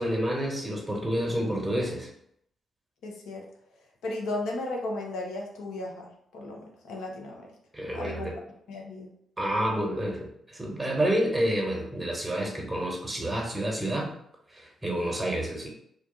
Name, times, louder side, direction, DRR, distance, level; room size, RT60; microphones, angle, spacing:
voice 1, 0.0-2.1 7.7-8.3 9.4-14.1 14.5-15.7, right 1 dB, 15° right, -1 dB, 1.1 m, -29 dB
voice 2, 3.0-3.5 4.0-7.5 7.9-8.4 8.7-9.1, left 2 dB, 75° left, 0 dB, 0.7 m, -35 dB
2.4 x 2.2 x 3.9 m, 0.71 s
hypercardioid pair, 40°, 0 cm